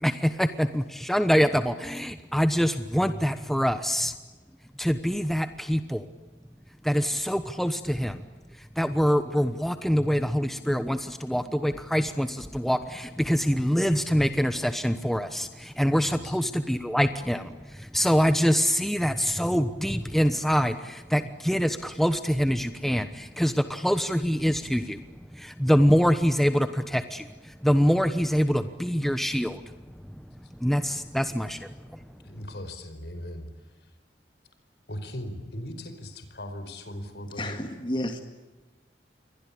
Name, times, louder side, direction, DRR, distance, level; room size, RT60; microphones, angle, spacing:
voice 1, 0.0-4.1 4.8-6.1 6.8-8.3 8.6-29.6 30.5-32.0, equal, ahead, 10 dB, 1.1 m, -25 dB
voice 2, 16.0-16.4 30.4-30.5 32.2-33.9 34.9-37.5, left 1 dB, 65° left, 9 dB, 5.0 m, -39 dB
voice 3, 37.4-38.2, left 1 dB, 30° left, 6 dB, 2.1 m, -31 dB
29.0 x 23.5 x 8.6 m, 1.2 s
head